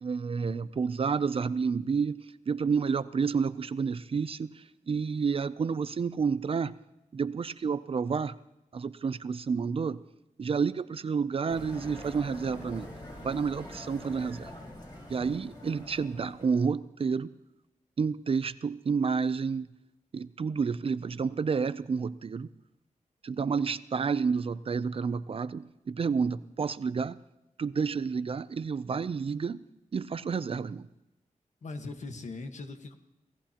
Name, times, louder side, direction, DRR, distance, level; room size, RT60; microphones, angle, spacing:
voice 1, 0.0-4.5 4.9-6.7 7.1-8.3 8.7-10.0 10.4-12.9 13.2-14.5 15.1-17.3 18.0-19.7 20.1-22.5 23.2-27.2 27.6-29.6 29.9-30.8, right 5 dB, 45° right, 15 dB, 0.5 m, -30 dB
sound 1, 11.5-16.6, left 1 dB, 35° left, 5.2 m, -45 dB
voice 2, 31.6-32.9, left 3 dB, 65° left, 5 dB, 1.5 m, -40 dB
27.0 x 17.5 x 3.0 m, 0.93 s
wide cardioid pair, 175°, 13 cm